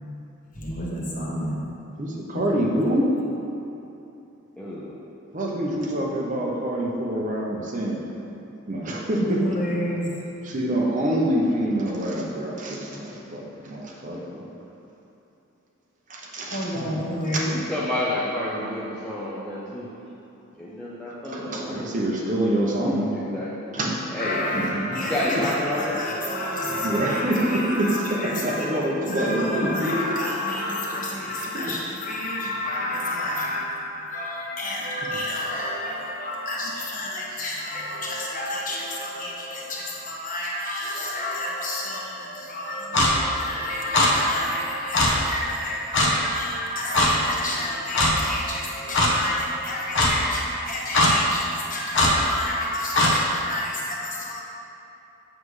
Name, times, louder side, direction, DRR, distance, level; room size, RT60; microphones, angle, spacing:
voice 1, 0.5-1.6 2.3-2.4 9.2-10.2 16.5-17.6 24.2-28.7 29.0-54.4, left 1 dB, 40° left, -5 dB, 1.2 m, -30 dB
voice 2, 2.0-3.1 5.3-8.1 8.7-9.4 10.5-14.5 16.1-17.4 21.3-23.1 23.7-24.1 24.5-24.8 25.3-25.4 26.8-30.1 31.5-31.6, right 1 dB, 35° right, -2 dB, 0.7 m, -26 dB
voice 3, 4.6-4.9 17.4-19.9 20.6-23.7 24.1-24.4 24.9-26.0, left 1 dB, 5° left, -10 dB, 0.7 m, -30 dB
Clock, 42.9-43.1 43.9-44.1 44.9-45.1 45.9-46.1 46.9-47.1 47.9-48.1 48.9-49.1 49.9-50.1 50.9-51.1 51.9-52.1 52.9-53.1, left 2 dB, 60° left, 0.9 m, -19 dB
7.4 x 6.5 x 3.2 m, 2.9 s
head